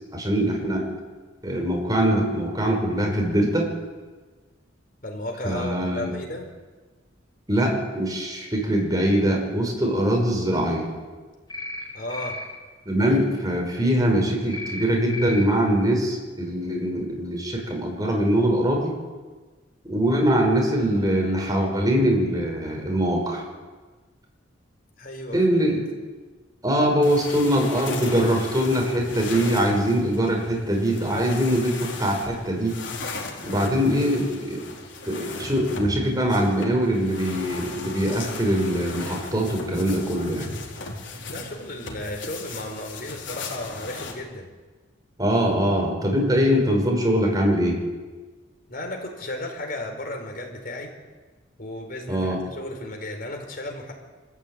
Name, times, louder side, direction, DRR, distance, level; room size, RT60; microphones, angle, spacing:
voice 1, 0.1-0.9 1.4-3.7 5.4-6.1 7.5-10.9 12.9-18.9 19.8-23.4 25.3-25.9 26.6-32.8 33.4-34.6 35.0-40.5 45.2-47.8 52.1-52.4, equal, 20° right, 1 dB, 5.8 m, -22 dB
voice 2, 5.0-6.5 11.9-12.4 25.0-25.8 41.3-44.5 48.7-50.9 51.6-53.9, left 1 dB, 45° left, 3 dB, 4.8 m, -34 dB
sound 1, 11.5-11.8 12.1-12.4 14.5-14.8 15.1-15.4, left 2 dB, 20° left, 6.2 m, -34 dB
sound 2, 27.0-44.1, left 3 dB, 65° left, 4.4 m, -37 dB
25.5 x 15.0 x 9.3 m, 1.3 s
head